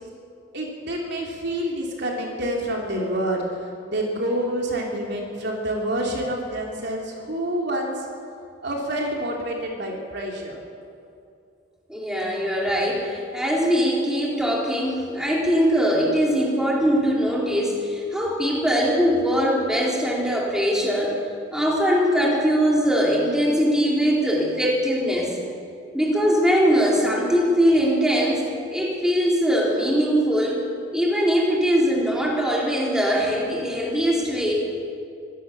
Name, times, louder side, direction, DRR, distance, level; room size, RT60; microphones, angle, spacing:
voice 1, 0.5-3.5 3.9-7.9 8.6-10.6, right 1 dB, 55° right, -1 dB, 3.6 m, -27 dB
voice 2, 11.9-21.2 21.5-25.4 25.9-28.4 28.7-30.6 30.9-34.6, equal, 5° right, -3 dB, 3.9 m, -21 dB
25.0 x 16.0 x 7.1 m, 2.6 s
head